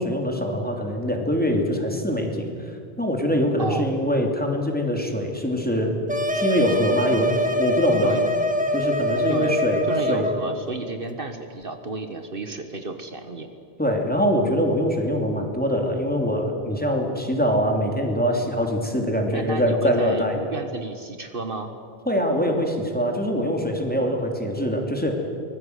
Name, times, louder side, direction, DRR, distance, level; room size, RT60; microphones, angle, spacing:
voice 1, 0.0-2.5 3.0-5.9 6.3-8.2 8.7-10.3 13.8-20.4 22.1-25.2, equal, 10° left, 2 dB, 3.1 m, -23 dB
voice 2, 3.6-3.9 8.0-8.2 9.3-9.6 9.9-13.5 19.3-21.7, right 3 dB, 60° right, 7 dB, 1.6 m, -32 dB
sound 1, 6.1-10.6, equal, 10° right, 1.8 m, -24 dB
24.5 x 20.5 x 8.2 m, 2.3 s
omnidirectional pair, 1.1 m